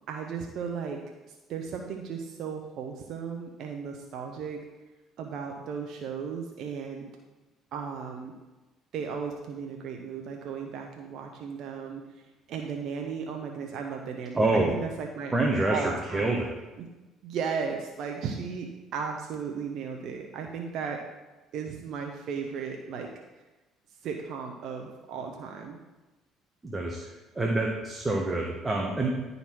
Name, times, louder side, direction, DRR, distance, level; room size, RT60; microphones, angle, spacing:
voice 1, 0.1-1.0 1.3-4.6 5.2-7.1 7.7-8.3 8.9-12.2 12.5-15.3 15.6-16.4 16.8-16.9 17.2-21.0 21.5-23.1 24.0-25.8, right 6 dB, 65° right, 2 dB, 0.9 m, -35 dB
voice 2, 14.4-14.7 15.3-16.5 26.6-27.0 27.3-29.2, right 2 dB, 20° right, -1 dB, 1.3 m, -26 dB
11.0 x 4.1 x 4.6 m, 1.1 s
hypercardioid pair, 65°, 0 cm